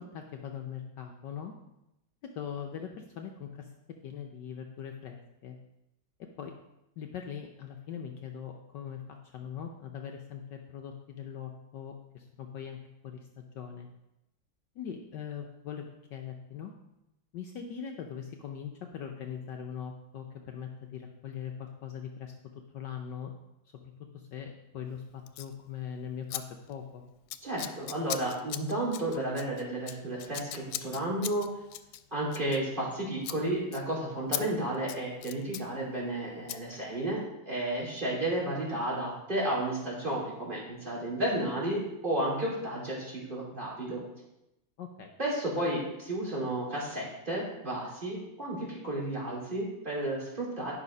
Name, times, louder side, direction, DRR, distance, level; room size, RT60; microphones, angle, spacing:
voice 1, 0.0-1.5 2.2-3.7 4.0-5.6 6.4-6.5 7.0-9.0 9.3-12.8 13.0-13.9 14.8-15.8 16.1-16.7 17.3-22.3 22.7-23.3 24.1-27.0 44.8-45.1, left 8 dB, 65° left, 3 dB, 1.3 m, -41 dB
Scissors, 25.3-25.5 26.3-26.4 26.7-26.9 27.3-32.9 33.2-33.4 33.7-33.8 34.3-34.4 34.7-35.7 36.5-36.6, left 12 dB, 90° left, 1.4 m, -39 dB
voice 2, 27.4-31.5 32.1-44.0 45.2-50.7, right 1 dB, 25° right, -5 dB, 3.2 m, -32 dB
11.0 x 5.6 x 5.3 m, 0.89 s
omnidirectional pair, 2.2 m